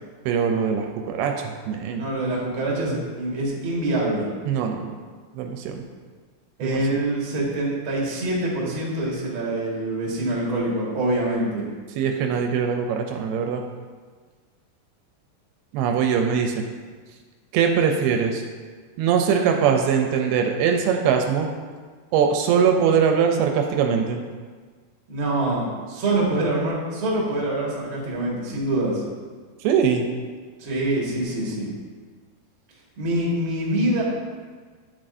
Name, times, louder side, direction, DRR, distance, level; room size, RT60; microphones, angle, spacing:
voice 1, 0.3-2.1 4.5-5.0 5.4-5.8 6.6-6.8 12.0-13.6 15.7-16.5 17.5-18.4 19.0-21.5 22.1-24.2 29.6-30.1, right 7 dB, 85° right, 4 dB, 2.5 m, -22 dB
voice 2, 2.0-4.3 6.6-11.7 25.1-29.0 30.6-31.7 33.0-34.0, right 1 dB, 45° right, -4 dB, 1.9 m, -25 dB
9.8 x 7.5 x 2.6 m, 1.5 s
omnidirectional pair, 4.5 m